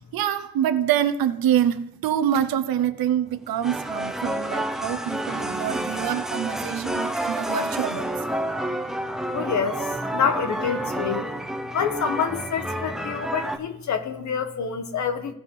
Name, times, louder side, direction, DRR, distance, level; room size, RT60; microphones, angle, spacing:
voice 1, 0.1-8.1, right 10 dB, 85° right, 0.8 m, -25 dB
sound 1, 3.5-13.6, right 1 dB, ahead, 0.5 m, -29 dB
voice 2, 9.3-11.3 11.7-15.3, left 6 dB, 55° left, 1.1 m, -27 dB
16.5 x 5.8 x 3.7 m
wide cardioid pair, 170°, 35 cm